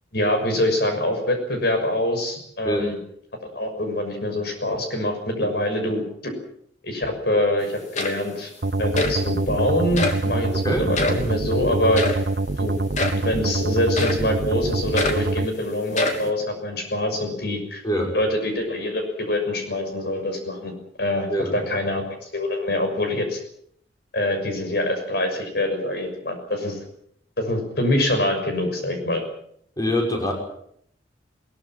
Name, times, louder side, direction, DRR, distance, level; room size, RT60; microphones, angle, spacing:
voice 1, 0.1-3.0 3.4-6.3 6.8-8.5 8.8-12.1 12.6-17.8 18.1-20.7 21.0-23.4 24.1-26.8 27.4-29.2, left 1 dB, 60° left, 5 dB, 6.3 m, -25 dB
sound 1, 7.6-7.7 7.9-8.4 9.0-9.2 10.0-10.3 10.9-11.2 12.0-12.3 12.9-13.3 14.0-14.3 15.0-15.3 15.9-16.3, left 3 dB, 40° left, 3.2 m, -26 dB
sound 2, 8.6-15.5, right 2 dB, 55° right, 0.9 m, -25 dB
voice 2, 29.8-30.3, equal, 20° left, 2 dB, 5.7 m, -23 dB
22.0 x 20.5 x 7.5 m, 0.68 s
head